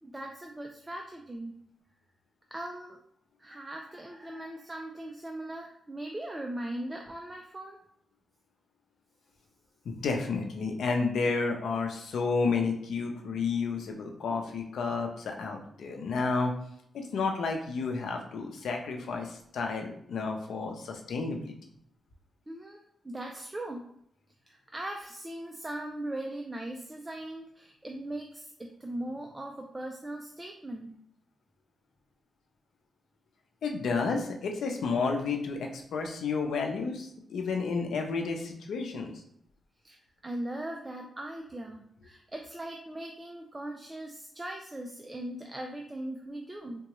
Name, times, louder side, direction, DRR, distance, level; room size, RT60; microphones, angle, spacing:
voice 1, 0.0-1.5 2.5-3.0 3.4-7.8 22.5-23.8 24.5-30.9 39.8-46.9, right 1 dB, 15° right, 2 dB, 0.3 m, -39 dB
voice 2, 9.8-16.5 16.9-21.5 33.6-39.1, left 4 dB, 80° left, 3 dB, 0.6 m, -31 dB
3.8 x 2.2 x 3.0 m, 0.72 s
wide cardioid pair, 130°, 0 cm